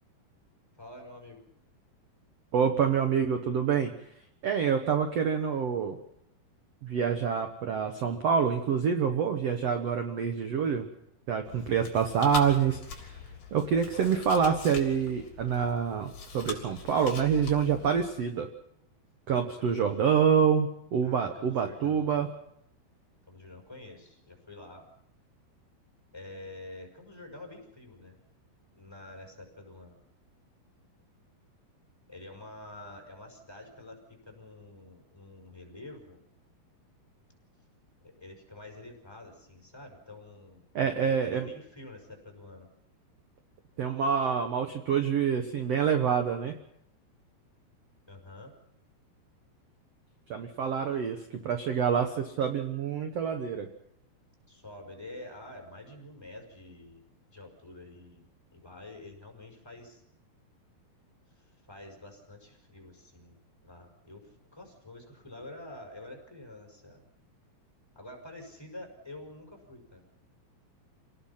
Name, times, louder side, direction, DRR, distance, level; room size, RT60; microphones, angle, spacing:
voice 1, 0.8-1.4 5.0-5.1 13.5-14.2 19.6-19.8 21.0-22.3 23.3-24.9 26.1-28.2 28.7-30.0 32.1-36.2 38.0-42.7 48.1-48.5 54.5-57.0 57.3-58.2 58.5-60.0 61.4-63.4 63.6-67.0 68.0-70.0, left 2 dB, 5° left, 1 dB, 5.4 m, -48 dB
voice 2, 2.5-3.9 4.4-6.0 6.8-10.9 11.3-13.2 13.5-18.5 19.3-22.3 40.7-41.5 43.8-46.5 50.3-53.7, right 7 dB, 65° right, 6 dB, 1.6 m, -27 dB
Chewing mastication, 11.4-18.1, left 5 dB, 40° left, 4.3 m, -42 dB
28.0 x 18.5 x 5.8 m, 0.77 s
omnidirectional pair, 4.7 m